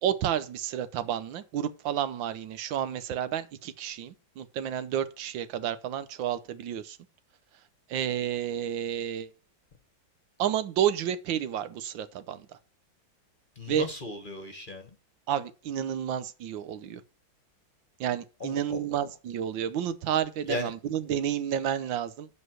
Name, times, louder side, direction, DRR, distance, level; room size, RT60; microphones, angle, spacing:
voice 1, 0.0-7.0 7.9-9.3 10.4-12.5 13.7-13.9 15.3-17.0 18.0-22.3, right 10 dB, 80° right, 1.5 m, -30 dB
voice 2, 13.6-14.9 18.4-18.8 20.5-20.7, left 2 dB, 30° left, 1.1 m, -36 dB
7.7 x 5.4 x 7.7 m
omnidirectional pair, 2.0 m